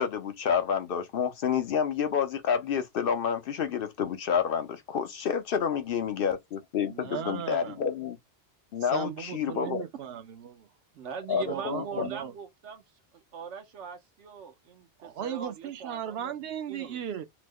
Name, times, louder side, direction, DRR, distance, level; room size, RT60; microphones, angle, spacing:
voice 1, 0.0-8.2 8.7-9.8 11.3-12.1, left 7 dB, 60° left, 0.7 m, -29 dB
voice 2, 6.8-7.8 8.9-10.7 11.5-12.3 15.0-17.3, right 9 dB, 65° right, 0.8 m, -36 dB
voice 3, 10.9-12.8 13.1-17.0, right 7 dB, 85° right, 1.1 m, -42 dB
3.0 x 2.1 x 3.4 m
omnidirectional pair, 1.2 m